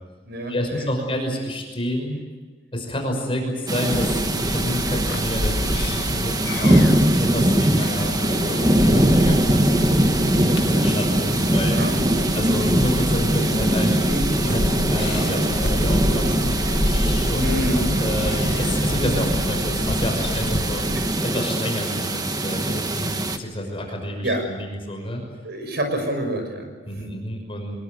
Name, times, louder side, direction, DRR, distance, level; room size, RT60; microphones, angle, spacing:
voice 1, 0.5-2.2 2.7-6.8 7.2-10.0 10.4-11.8 12.1-14.0 14.4-16.5 17.3-17.4 18.0-20.8 21.2-25.2 26.9-27.8, equal, 30° left, 2 dB, 5.9 m, -29 dB
sound 1, 3.7-23.4, right 1 dB, 20° right, 1.6 m, -21 dB
sound 2, 3.9-21.1, left 1 dB, 65° left, 2.1 m, -28 dB
voice 2, 17.3-17.9 24.2-24.4 25.4-26.7, right 1 dB, 60° right, 6 dB, 6.5 m, -26 dB
25.5 x 22.0 x 8.1 m, 1.4 s
head